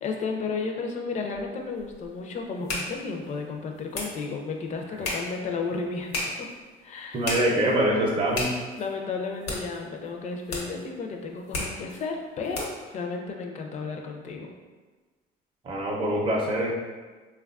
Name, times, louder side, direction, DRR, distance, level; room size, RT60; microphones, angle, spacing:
voice 1, 0.0-6.5 6.8-7.2 8.7-14.5, left 4 dB, 45° left, 2 dB, 0.4 m, -33 dB
sound 1, 1.3-12.9, left 2 dB, 85° left, 0.8 m, -37 dB
voice 2, 7.1-8.5 15.6-16.7, right 1 dB, 30° right, -3 dB, 0.5 m, -24 dB
3.3 x 2.3 x 2.3 m, 1.3 s
cardioid pair, 110°, 17 cm